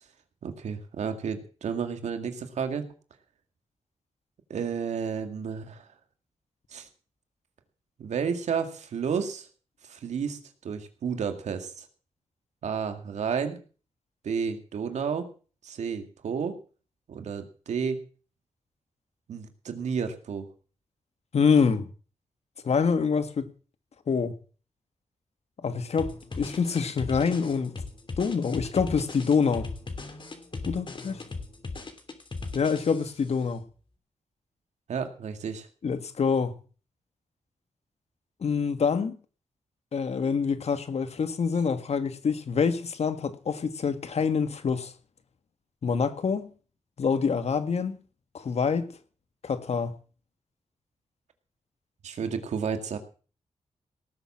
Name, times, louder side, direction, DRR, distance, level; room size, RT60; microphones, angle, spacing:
voice 1, 0.4-2.9 4.5-5.9 6.7-6.9 8.0-9.5 9.9-11.8 12.6-13.6 14.2-15.3 15.6-16.6 17.1-18.0 19.3-20.5 34.9-35.7 52.0-53.0, right 6 dB, 90° right, 2.0 m, -31 dB
voice 2, 21.3-21.9 22.6-23.5 24.1-24.3 25.6-27.8 28.2-29.7 30.7-31.2 32.5-33.6 35.8-36.6 38.4-39.2 39.9-44.9 45.8-46.5 47.0-48.0 48.3-49.0 49.4-49.9, left 5 dB, 65° left, 1.7 m, -26 dB
sound 1, 26.0-33.3, left 3 dB, 45° left, 3.1 m, -38 dB
18.5 x 7.5 x 7.3 m
cardioid pair, 65°, 12 cm